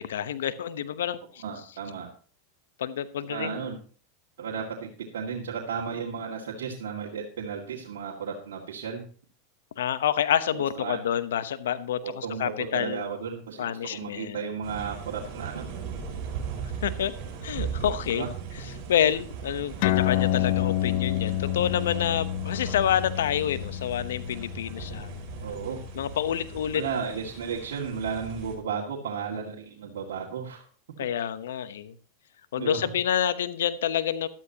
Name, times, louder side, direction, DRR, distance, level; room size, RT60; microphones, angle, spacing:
voice 1, 0.0-1.4 2.8-3.6 9.8-13.0 13.6-14.4 16.8-17.1 17.4-18.3 18.9-25.1 25.9-26.8 31.0-31.9 32.5-34.3, left 10 dB, 85° left, 14 dB, 1.0 m, -28 dB
voice 2, 1.4-2.1 3.3-3.8 4.4-9.0 10.5-11.0 12.0-15.7 18.1-18.3 25.4-25.8 26.7-30.6 32.6-32.8, right 6 dB, 80° right, -3 dB, 2.1 m, -34 dB
sound 1, 14.6-28.5, right 7 dB, 50° right, 5.8 m, -39 dB
sound 2, 19.8-26.7, left 15 dB, 60° left, 0.6 m, -29 dB
13.5 x 12.5 x 2.9 m, 0.41 s
hypercardioid pair, 115°, 0 cm